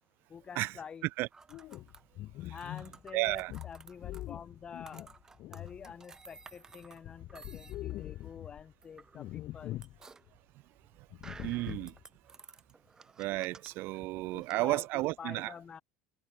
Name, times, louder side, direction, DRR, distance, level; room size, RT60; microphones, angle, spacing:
voice 1, 0.3-1.1 2.5-5.1 5.5-9.8 14.0-15.8, left 7 dB, 20° left, 0.8 m, -48 dB
sound 1, 1.3-14.6, right 4 dB, 10° right, 1.2 m, -55 dB
sound 2, 1.5-6.5 6.8-8.7 9.1-10.0 10.3-10.4 11.1-12.0, left 15 dB, 40° left, 1.1 m, -43 dB
voice 2, 3.1-3.5 11.4-11.9 13.2-15.5, right 20 dB, 50° right, 0.7 m, -32 dB
cardioid pair, 165°, 5 cm